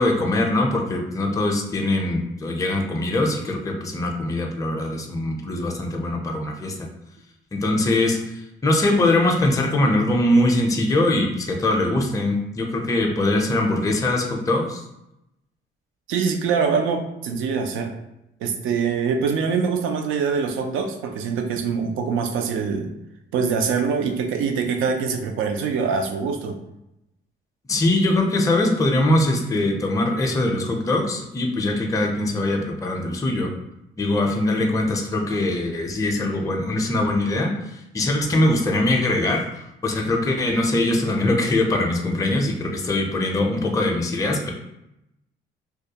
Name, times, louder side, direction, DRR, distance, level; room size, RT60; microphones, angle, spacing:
voice 1, 0.0-6.9 7.5-14.8 27.7-33.5 34.0-44.5, left 1 dB, 15° left, 1 dB, 0.4 m, -22 dB
voice 2, 16.1-17.9 18.4-22.9 23.3-26.6, right 5 dB, 85° right, 5 dB, 0.4 m, -24 dB
2.3 x 2.1 x 2.7 m, 0.87 s
cardioid pair, 90°, 20 cm